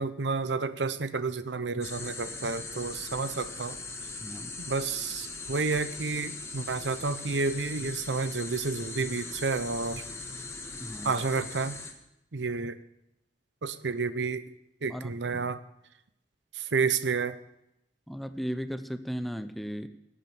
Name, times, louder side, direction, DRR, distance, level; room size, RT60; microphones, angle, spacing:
voice 1, 0.0-3.8 4.7-10.0 11.0-11.8 12.3-12.8 13.6-14.4 14.8-15.6 16.6-17.3, right 4 dB, 80° right, 13 dB, 0.8 m, -30 dB
sound 1, 1.8-11.9, left 3 dB, 15° left, 1.6 m, -40 dB
voice 2, 4.2-4.5 10.8-11.2 14.9-15.5 18.1-19.9, equal, ahead, 10 dB, 0.7 m, -36 dB
18.0 x 8.8 x 6.9 m, 0.83 s
head